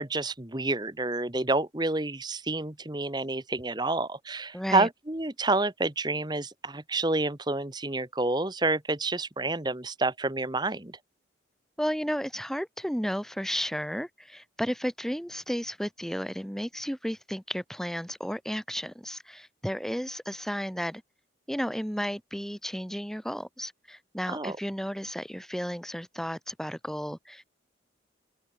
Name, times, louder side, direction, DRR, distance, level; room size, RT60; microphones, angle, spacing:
voice 1, 0.0-11.0 24.3-24.6, right 2 dB, 20° right, 1.2 m, -29 dB
voice 2, 4.5-4.9 11.8-21.0 21.5-27.5, equal, ahead, 4.0 m, -33 dB
open air
head